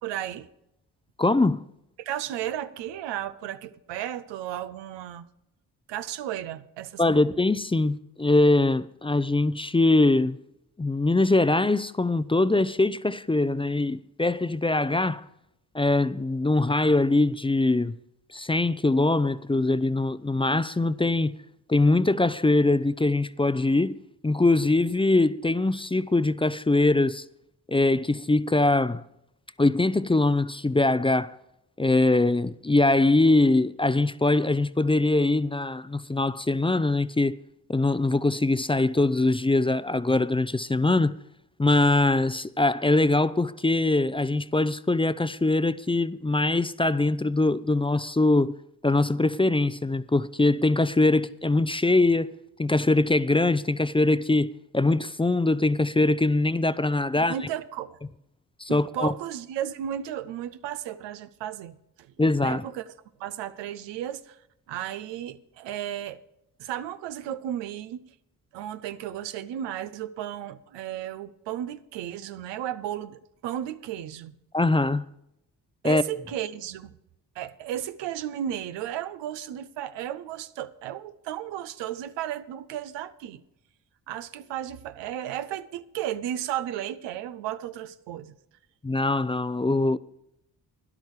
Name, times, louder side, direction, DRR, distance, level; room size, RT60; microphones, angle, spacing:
voice 1, 0.0-0.5 2.0-5.3 5.9-7.2 57.2-58.0 58.7-62.1 62.4-62.9 63.2-64.4 64.7-66.2 66.6-68.0 68.5-74.4 75.8-76.9 77.4-83.4 84.1-88.3, right 11 dB, 90° right, 0.7 m, -34 dB
voice 2, 1.2-1.6 7.0-10.4 10.8-15.2 15.7-18.0 18.3-21.3 21.7-24.0 24.2-27.2 27.7-29.0 29.6-31.4 31.8-37.4 37.7-41.1 41.6-48.6 48.8-52.3 52.6-57.3 58.6-59.1 62.2-62.6 74.5-75.0 75.8-76.0 88.8-90.0, left 2 dB, 15° left, 0.5 m, -22 dB
12.5 x 10.5 x 4.8 m
supercardioid pair, 50°, 42 cm